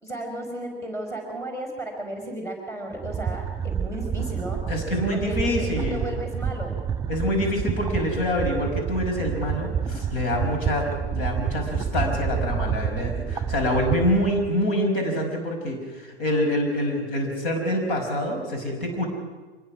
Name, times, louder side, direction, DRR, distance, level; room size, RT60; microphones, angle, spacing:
voice 1, 0.0-4.6 5.1-6.7, right 1 dB, 10° left, 2 dB, 4.8 m, -34 dB
sound 1, 2.9-14.5, right 7 dB, 10° right, 1.8 m, -29 dB
voice 2, 4.7-6.2 7.1-19.1, left 1 dB, 55° left, 3 dB, 5.7 m, -26 dB
25.0 x 20.0 x 6.1 m, 1.3 s
figure-of-eight pair, 95°, 32 cm